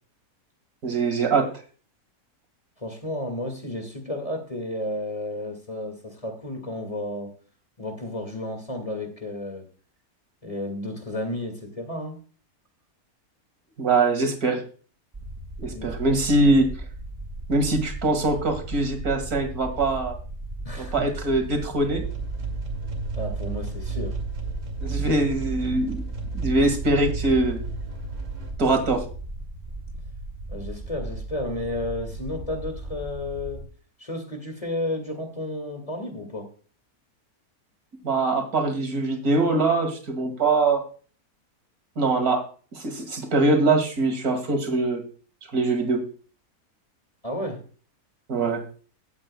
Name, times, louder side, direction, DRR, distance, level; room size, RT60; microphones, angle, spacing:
voice 1, 0.8-1.5 13.8-14.6 15.6-16.7 17.5-20.1 20.8-22.0 24.8-26.0 26.3-27.6 28.6-29.0 38.0-40.8 42.0-42.4 42.7-45.0 45.5-46.0 48.3-48.6, right 2 dB, 80° right, 5 dB, 2.5 m, -23 dB
voice 2, 2.8-7.3 7.8-9.7 10.4-12.2 15.7-16.2 20.6-21.1 23.2-24.2 30.5-33.6 34.0-36.5 47.2-47.6, left 1 dB, 25° left, 5 dB, 2.2 m, -32 dB
sound 1, 15.1-33.6, right 1 dB, 25° right, 4.3 m, -37 dB
sound 2, 21.9-28.5, right 4 dB, 55° right, 2.7 m, -32 dB
17.0 x 8.6 x 2.3 m, 0.40 s
omnidirectional pair, 1.5 m